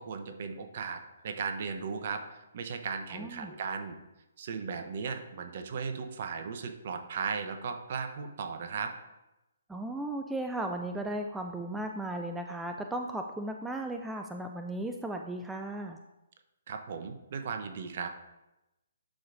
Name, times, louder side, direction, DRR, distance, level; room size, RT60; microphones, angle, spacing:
voice 1, 0.0-4.0 4.4-8.9 16.7-18.1, right 5 dB, 50° right, 6 dB, 0.8 m, -36 dB
voice 2, 3.1-3.5 9.7-16.0, right 1 dB, 5° right, 3 dB, 0.4 m, -36 dB
11.5 x 4.8 x 2.6 m, 0.95 s
figure-of-eight pair, 135°, 0 cm